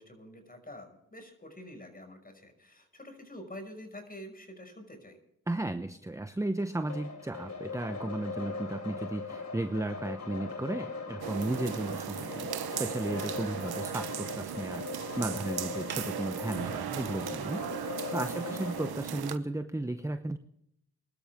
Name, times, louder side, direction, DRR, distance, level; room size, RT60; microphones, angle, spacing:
voice 1, 0.0-5.2 18.2-18.6, left 1 dB, 25° left, 6 dB, 5.6 m, -47 dB
voice 2, 5.5-12.5 12.8-17.6 18.1-20.4, right 2 dB, 10° right, 9 dB, 0.8 m, -34 dB
sound 1, 6.9-18.9, left 4 dB, 45° left, 3.7 m, -40 dB
sound 2, 11.2-19.4, right 9 dB, 80° right, 1.1 m, -37 dB
23.5 x 12.5 x 3.6 m, 0.76 s
cardioid pair, 60°, 37 cm